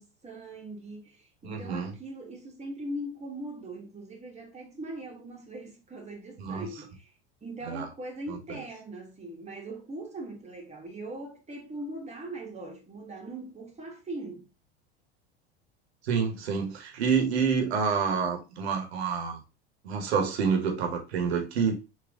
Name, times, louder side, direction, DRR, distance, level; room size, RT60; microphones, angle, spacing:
voice 1, 0.0-7.1 7.4-14.4, right 1 dB, 20° right, 1.5 m, -40 dB
voice 2, 1.4-1.9 6.4-6.7 7.7-7.9 8.3-8.4 16.0-19.4 19.8-21.7, right 6 dB, 85° right, 1.3 m, -28 dB
3.7 x 3.0 x 3.6 m
hypercardioid pair, 100°, 31 cm